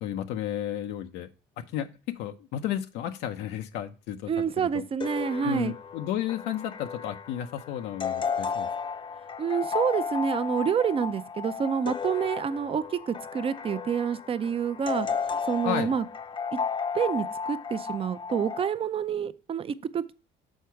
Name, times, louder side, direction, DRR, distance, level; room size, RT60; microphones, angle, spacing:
voice 1, 0.0-1.3 1.6-4.3 4.6-4.8 5.4-8.7 15.6-15.9, left 11 dB, 90° left, 0.6 m, -33 dB
voice 2, 4.3-5.7 9.4-15.1 15.5-16.0 16.9-20.1, right 7 dB, 35° right, 0.5 m, -28 dB
sound 1, 5.0-18.7, left 6 dB, 30° left, 0.6 m, -34 dB
6.5 x 4.7 x 4.4 m
cardioid pair, 110°, 17 cm